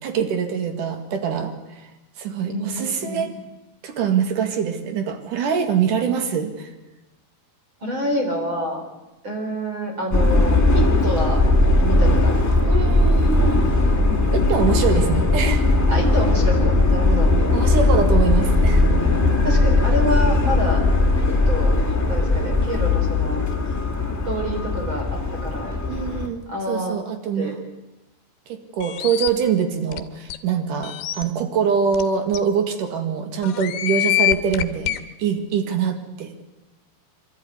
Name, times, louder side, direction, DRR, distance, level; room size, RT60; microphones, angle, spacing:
voice 1, 0.0-1.8 2.2-3.3 3.8-6.7 12.7-13.7 14.3-15.7 17.5-18.9 25.9-26.4 26.7-27.6 28.5-34.9 35.2-36.4, right 6 dB, 55° right, 7 dB, 3.1 m, -24 dB
voice 2, 2.4-3.3 7.8-8.8 9.2-11.4 11.8-12.7 15.9-17.3 19.4-20.8 21.3-21.7 22.0-23.4 24.3-25.0 25.4-25.8 26.5-27.0 27.4-27.5, right 1 dB, 30° right, 2 dB, 4.3 m, -27 dB
Subway metro underground, 10.1-26.2, left 2 dB, 10° left, 0.8 m, -18 dB
sound 1, 28.8-29.3 29.9-30.0 30.3-30.4 30.8-31.2 31.9-32.0 32.3-32.4 33.4-35.0, left 14 dB, 80° left, 3.2 m, -24 dB
26.5 x 12.5 x 9.6 m, 1.0 s
omnidirectional pair, 5.2 m